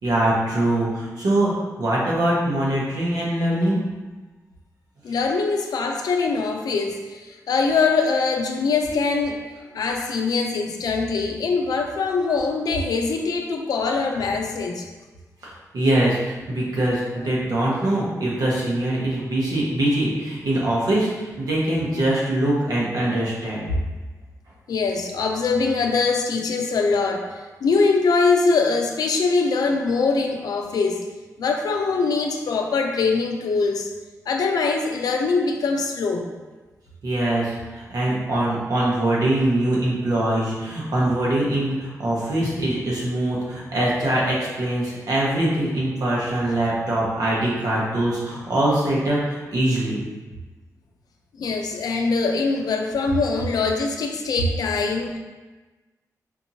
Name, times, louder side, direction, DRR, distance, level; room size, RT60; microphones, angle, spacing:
voice 1, 0.0-1.5 1.8-3.8 15.4-23.7 37.0-50.0, right 1 dB, 70° right, -5 dB, 1.2 m, -23 dB
voice 2, 5.0-9.4 9.7-14.8 24.7-31.0 31.4-33.9 34.3-36.3 42.4-42.6 51.4-55.2, left 4 dB, 85° left, 3 dB, 0.5 m, -23 dB
4.4 x 2.9 x 2.7 m, 1.2 s
wide cardioid pair, 100°, 6 cm